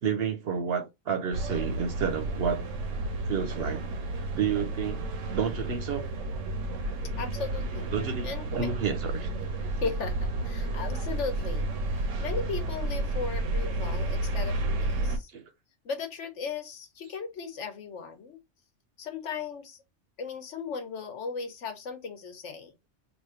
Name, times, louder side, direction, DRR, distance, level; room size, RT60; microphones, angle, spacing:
voice 1, 0.0-2.6 3.3-3.9 4.3-5.0 5.3-6.1 7.9-9.3 15.3-15.4, right 6 dB, 60° right, 0.8 m, -30 dB
sound 1, 1.3-15.2, right 2 dB, 90° right, 1.1 m, -31 dB
voice 2, 7.2-8.7 9.8-15.3 15.8-18.4 19.0-19.8 20.2-22.7, left 5 dB, 70° left, 1.2 m, -37 dB
3.1 x 2.5 x 4.2 m
omnidirectional pair, 1.3 m